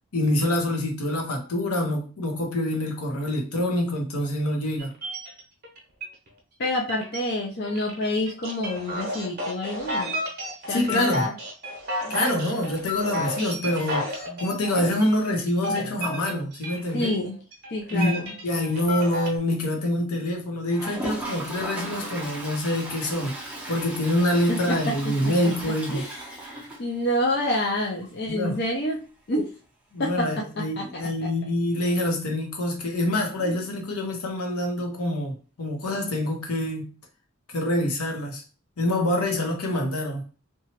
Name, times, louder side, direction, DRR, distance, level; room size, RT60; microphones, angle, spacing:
voice 1, 0.1-4.9 10.7-11.3 12.1-14.1 14.4-17.1 17.9-26.0 28.3-28.6 29.9-36.9 37.5-38.4 38.8-40.2, left 1 dB, 80° left, 0.8 m, -26 dB
sound 1, 4.8-6.3 6.6-7.2 7.6-17.1 17.5-19.4, left 1 dB, 45° right, 0.7 m, -32 dB
voice 2, 6.6-10.1 10.7-11.3 12.0-12.2 16.9-17.4 17.7-18.3 24.5-25.3 25.9-29.0 29.3-29.5 30.0-31.3 33.4-33.6, left 1 dB, 45° left, 0.5 m, -28 dB
Toilet flush, 20.7-27.4 27.7-27.8 28.0-28.1 28.4-28.5 31.0-31.1 32.4-32.5, right 1 dB, 5° right, 0.5 m, -37 dB
2.9 x 2.2 x 2.9 m
head